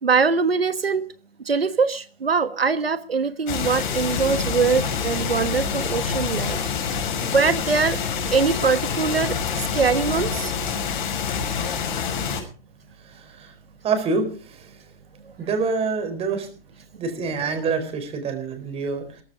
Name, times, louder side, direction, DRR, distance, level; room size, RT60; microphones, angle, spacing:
voice 1, 0.0-1.0 1.4-6.6 7.2-8.0 8.3-10.5, right 5 dB, 80° right, 12 dB, 1.3 m, -22 dB
sound 1, 3.5-12.4, left 6 dB, 50° left, 6.0 m, -26 dB
voice 2, 13.0-13.5 13.8-14.8 15.4-16.5 17.0-19.0, right 4 dB, 20° right, 8 dB, 4.4 m, -26 dB
18.0 x 14.5 x 4.9 m, 0.39 s
figure-of-eight pair, 120°, 30 cm